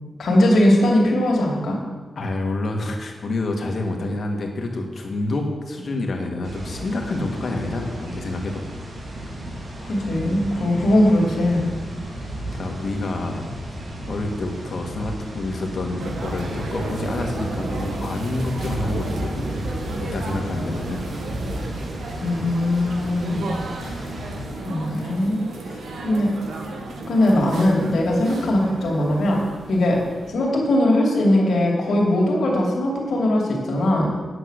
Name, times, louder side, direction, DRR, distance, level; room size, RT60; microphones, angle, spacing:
voice 1, 0.2-1.8 9.8-11.7 22.2-23.5 23.8-24.0 24.6-25.4 25.7-26.3 27.1-29.4 29.7-30.0 30.3-34.2, left 1 dB, 80° left, -1 dB, 2.6 m, -20 dB
voice 2, 2.1-8.6 12.5-13.5 14.1-19.5 20.0-21.0, left 2 dB, 55° left, 2 dB, 1.8 m, -28 dB
sound 1, 6.4-24.4, right 1 dB, 60° right, 3.1 m, -33 dB
sound 2, 16.0-30.3, right 2 dB, 90° right, 1.5 m, -33 dB
9.0 x 8.3 x 6.5 m, 1.4 s
wide cardioid pair, 115°, 0 cm